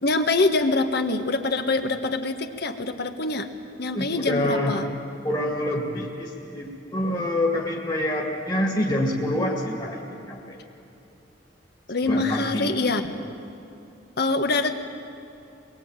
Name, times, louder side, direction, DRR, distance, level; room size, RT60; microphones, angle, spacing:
voice 1, 0.0-3.5 3.8-4.9 11.9-13.1 14.2-14.7, left 3 dB, 60° left, 7 dB, 1.5 m, -24 dB
voice 2, 3.9-4.7 5.2-10.6 12.1-12.7, left 1 dB, 25° left, -2 dB, 2.3 m, -26 dB
22.5 x 22.0 x 9.0 m, 2.8 s
head